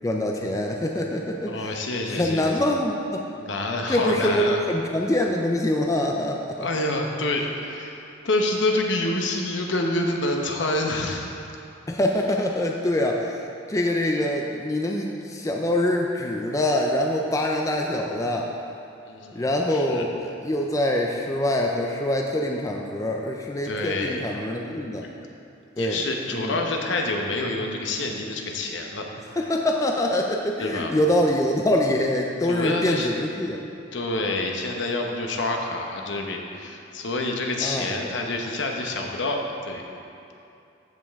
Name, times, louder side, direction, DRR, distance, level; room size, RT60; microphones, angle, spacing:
voice 1, 0.0-1.8 2.1-3.3 3.9-6.7 11.9-18.5 19.3-25.1 25.8-26.0 26.3-26.6 29.4-33.7 37.6-37.9, left 1 dB, 15° left, 0 dB, 0.4 m, -24 dB
voice 2, 1.5-2.5 3.4-4.6 6.6-11.3 19.0-20.0 23.6-24.3 25.8-29.1 29.3-29.5 30.6-30.9 32.5-33.1 33.9-39.4 39.7-39.8, left 2 dB, 70° left, 1 dB, 0.9 m, -27 dB
14.0 x 5.3 x 3.5 m, 2.6 s
head